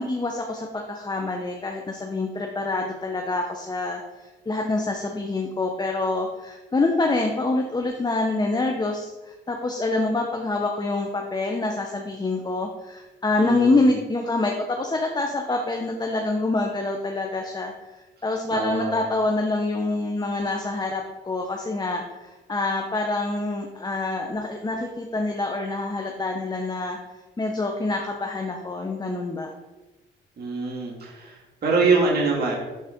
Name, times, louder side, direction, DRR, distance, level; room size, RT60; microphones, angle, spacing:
voice 1, 0.0-17.7 18.2-27.0 27.4-29.5, left 2 dB, 20° left, 2 dB, 0.8 m, -26 dB
voice 2, 13.4-13.8 18.5-19.0 30.4-32.6, right 3 dB, 55° right, -3 dB, 2.0 m, -24 dB
12.0 x 4.0 x 3.7 m, 1.1 s
cardioid pair, 90°, 20 cm